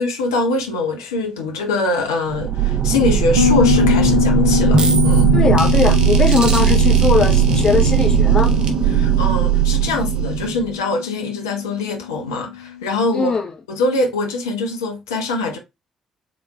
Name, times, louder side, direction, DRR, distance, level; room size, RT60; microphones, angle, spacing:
voice 1, 0.0-5.3 8.9-13.4 13.7-15.6, left 3 dB, 75° left, 0.8 m, -23 dB
sound 1, 2.3-10.8, right 8 dB, 45° right, 1.0 m, -17 dB
Bass guitar, 3.4-12.7, left 10 dB, 75° right, 0.4 m, -23 dB
voice 2, 5.3-8.5 13.1-13.5, left 4 dB, 35° left, 1.3 m, -20 dB
3.7 x 3.5 x 2.9 m
figure-of-eight pair, 45°, 2 cm